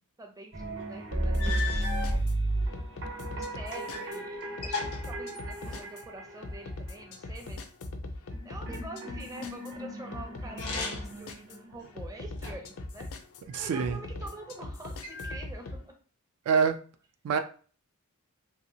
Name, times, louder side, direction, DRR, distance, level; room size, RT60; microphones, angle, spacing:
voice 1, 0.2-1.8 3.0-7.7 8.4-13.1 13.6-15.9, right 2 dB, 15° right, 0.5 m, -46 dB
sound 1, 0.5-6.9 8.3-12.0, right 1 dB, 55° right, 0.8 m, -34 dB
sound 2, 0.8-0.9 1.4-2.1 2.9-4.1 4.4-5.9 10.5-11.2 11.8-12.8 13.5-14.3 15.0-15.8, left 4 dB, 90° left, 1.0 m, -38 dB
sound 3, 1.1-15.8, left 2 dB, 70° left, 0.4 m, -41 dB
voice 2, 13.5-14.0 16.5-16.8 17.2-17.4, right 6 dB, 75° right, 0.3 m, -25 dB
2.8 x 2.8 x 2.7 m
head